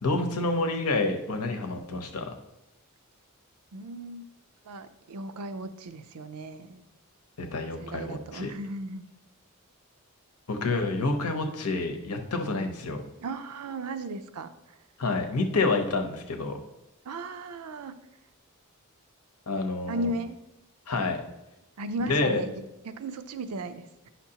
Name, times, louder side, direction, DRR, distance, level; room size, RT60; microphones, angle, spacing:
voice 1, 0.0-2.3 7.4-8.5 10.5-13.0 15.0-16.6 19.5-20.1 20.9-21.2 22.0-22.4, left 3 dB, 90° left, 0.9 m, -28 dB
voice 2, 3.7-4.2 4.6-6.8 7.8-9.0 13.2-14.5 17.1-17.9 19.9-20.4 21.8-24.1, right 2 dB, 90° right, 0.5 m, -36 dB
9.7 x 5.8 x 2.9 m
head